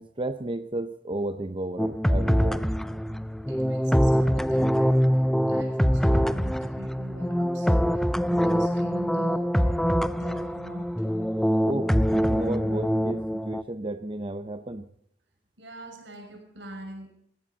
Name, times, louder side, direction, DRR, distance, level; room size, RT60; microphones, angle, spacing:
voice 1, 0.0-2.7 11.7-14.8, right 2 dB, 30° right, 10 dB, 0.7 m, -33 dB
sound 1, 1.8-13.6, equal, ahead, 0.5 m, -24 dB
voice 2, 3.5-11.1 15.6-17.1, right 1 dB, 90° right, 3 dB, 6.6 m, -42 dB
19.0 x 16.5 x 4.0 m, 0.70 s
head